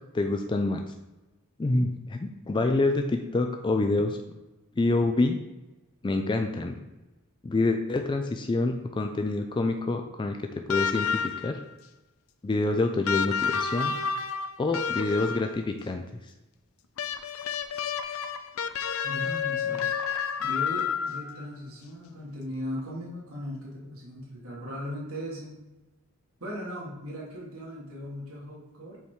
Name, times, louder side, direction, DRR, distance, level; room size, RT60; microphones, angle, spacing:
voice 1, 0.1-0.8 1.6-4.2 4.8-5.4 6.0-6.8 7.4-10.4 10.7-11.6 12.4-14.0 14.6-16.0, left 2 dB, 20° left, 5 dB, 0.4 m, -27 dB
sound 1, 10.7-11.6 13.1-15.6 17.0-21.4 22.8-22.9, left 6 dB, 80° left, 0.5 m, -30 dB
voice 2, 19.0-19.9 20.4-25.6 26.4-29.0, equal, 75° right, -5 dB, 1.7 m, -38 dB
5.6 x 4.7 x 4.5 m, 1.1 s
head